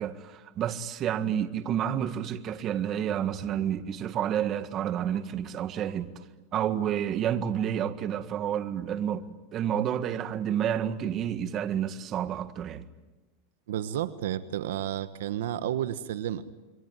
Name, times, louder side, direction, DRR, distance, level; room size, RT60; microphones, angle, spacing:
voice 1, 0.0-6.1 6.5-9.3 9.5-12.9, right 9 dB, 40° right, 1.8 m, -29 dB
voice 2, 5.7-6.0 6.6-7.0 9.8-9.9 13.7-16.4, right 11 dB, 85° right, 1.3 m, -32 dB
27.5 x 23.0 x 9.2 m
supercardioid pair, 120°, 0 cm